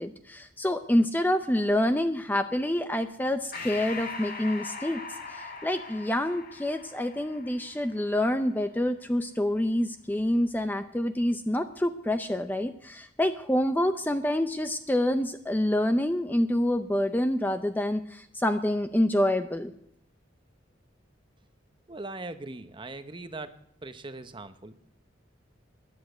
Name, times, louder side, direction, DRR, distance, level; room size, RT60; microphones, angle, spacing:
voice 1, 0.0-5.0 5.3-19.7, left 1 dB, 10° left, 9 dB, 0.5 m, -27 dB
Breathing, 3.5-8.4, left 4 dB, 50° left, 2.2 m, -41 dB
voice 2, 21.9-24.9, right 2 dB, 25° right, 10 dB, 0.8 m, -40 dB
13.0 x 10.5 x 7.9 m, 0.70 s
head